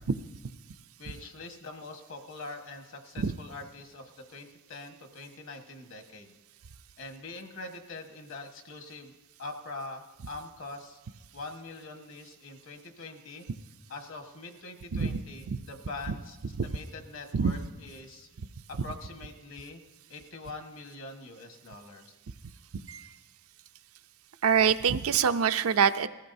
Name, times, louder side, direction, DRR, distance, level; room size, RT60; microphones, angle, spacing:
voice 1, 1.0-6.3 7.0-9.1 9.4-11.0 11.3-13.4 13.9-16.4 16.6-18.3 18.7-19.8 20.1-22.1, left 3 dB, 65° left, 5 dB, 1.4 m, -43 dB
voice 2, 14.9-15.2 15.5-15.6 16.6-16.7 17.3-17.5 22.9-23.1 24.4-26.1, right 7 dB, 80° right, 10 dB, 0.5 m, -25 dB
20.0 x 15.0 x 2.7 m, 1.2 s
head